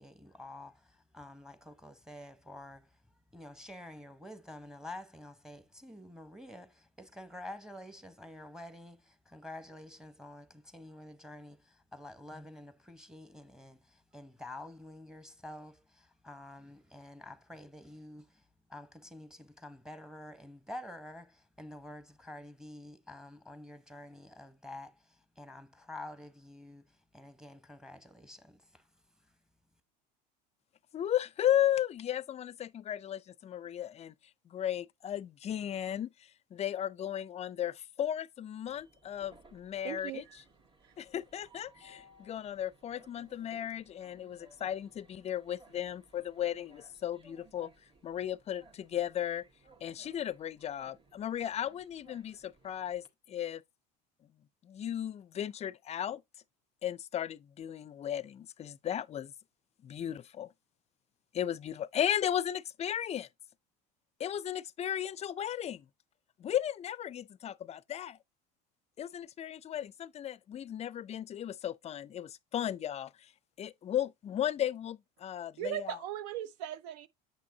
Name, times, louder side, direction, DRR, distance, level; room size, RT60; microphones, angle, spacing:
voice 1, 0.0-3.0 3.3-18.4 18.7-28.9, left 1 dB, 5° right, 1.1 m, -48 dB
voice 2, 30.9-34.1 34.5-40.2 41.0-47.7 48.0-49.4 49.8-53.6 54.6-56.2 56.8-59.3 59.8-60.5 61.3-63.3 64.2-65.8 66.4-68.2 69.0-73.3 73.6-76.0, left 10 dB, 30° left, 0.4 m, -35 dB
Train, 38.7-53.1, right 2 dB, 25° right, 1.8 m, -62 dB
voice 3, 39.8-40.4 40.8-40.9 75.6-77.1, right 12 dB, 75° right, 0.6 m, -38 dB
8.6 x 5.9 x 2.8 m
hypercardioid pair, 90°, 21 cm